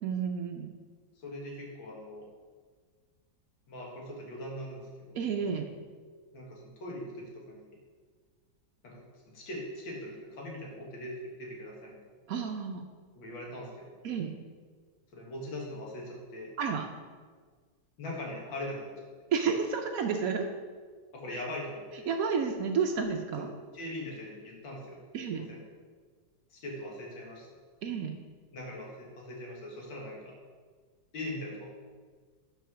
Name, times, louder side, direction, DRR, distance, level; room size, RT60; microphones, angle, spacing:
voice 1, 0.0-0.7 5.1-5.7 12.3-12.8 14.0-14.3 16.6-16.9 19.3-20.5 21.3-21.4 22.1-23.5 25.1-25.4 27.8-28.2, right 6 dB, 75° right, 4 dB, 0.8 m, -31 dB
voice 2, 1.2-2.3 3.7-5.2 6.3-7.8 8.8-9.0 9.3-12.0 13.2-13.9 15.1-16.5 18.0-19.3 21.1-22.1 23.7-25.0 25.3-25.6 26.5-27.5 28.5-30.3 31.1-31.6, left 1 dB, 85° left, -3 dB, 2.3 m, -41 dB
5.7 x 5.3 x 6.1 m, 1.5 s
omnidirectional pair, 2.1 m